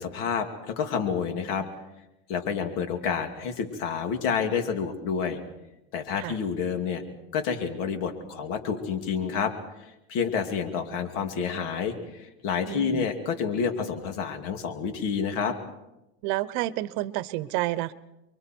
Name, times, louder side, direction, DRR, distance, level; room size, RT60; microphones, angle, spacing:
voice 1, 0.0-1.7 2.3-5.4 5.9-7.0 7.3-9.5 10.1-15.5, left 6 dB, 65° left, 6 dB, 2.8 m, -29 dB
voice 2, 12.7-13.1 16.2-17.9, right 16 dB, 70° right, 17 dB, 1.0 m, -29 dB
29.5 x 23.0 x 4.6 m, 0.95 s
supercardioid pair, 125°, 34 cm